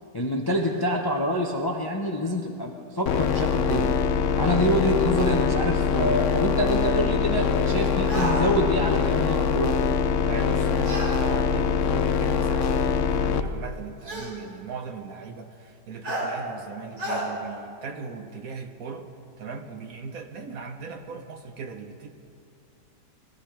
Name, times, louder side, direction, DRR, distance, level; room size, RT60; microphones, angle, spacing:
voice 1, 0.1-3.9 4.4-9.8, equal, 20° left, 1 dB, 0.6 m, -26 dB
sound 1, 3.1-13.4, left 6 dB, 70° left, 0.7 m, -23 dB
sound 2, 8.1-8.4 10.8-11.1 12.4-12.5 14.0-14.3 16.0-16.3 17.0-17.2, right 1 dB, 85° right, 3.7 m, -30 dB
voice 2, 10.2-19.1 19.4-22.1, right 5 dB, 60° right, 6 dB, 1.2 m, -38 dB
21.0 x 13.0 x 3.3 m, 2.4 s
omnidirectional pair, 1.8 m